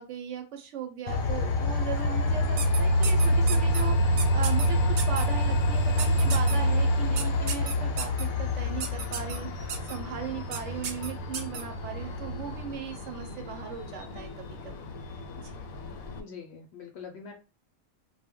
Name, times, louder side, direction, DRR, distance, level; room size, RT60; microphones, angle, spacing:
voice 1, 0.0-14.8 15.4-15.6, right 7 dB, 70° right, 4 dB, 0.8 m, -38 dB
Train, 1.1-16.2, left 1 dB, 85° left, 1.0 m, -27 dB
sound 1, 2.6-3.8 4.2-4.7 5.0-5.2 6.0-6.5 7.2-8.2 8.8-9.4 9.7-9.9 10.5-10.6 10.8-11.6, right 6 dB, 90° right, 1.0 m, -33 dB
voice 2, 16.1-17.3, left 6 dB, 65° left, 2 dB, 0.7 m, -43 dB
2.2 x 2.1 x 3.5 m, 0.31 s
omnidirectional pair, 1.4 m